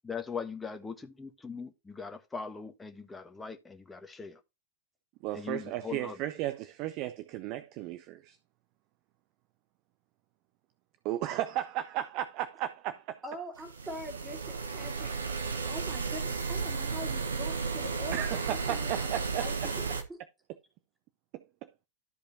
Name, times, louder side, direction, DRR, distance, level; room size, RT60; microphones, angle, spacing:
voice 1, 0.0-4.4 5.3-6.2, left 5 dB, 10° left, 1.2 m, -40 dB
voice 2, 5.2-8.4 11.0-13.2 18.1-19.5 21.3-21.4, right 13 dB, 40° right, 0.6 m, -35 dB
voice 3, 13.2-19.1 19.4-19.8 20.1-20.2, right 1 dB, 15° right, 2.4 m, -43 dB
sound 1, 13.6-20.0, right 4 dB, 75° right, 1.2 m, -34 dB
13.0 x 5.0 x 2.8 m
figure-of-eight pair, 90°, 0 cm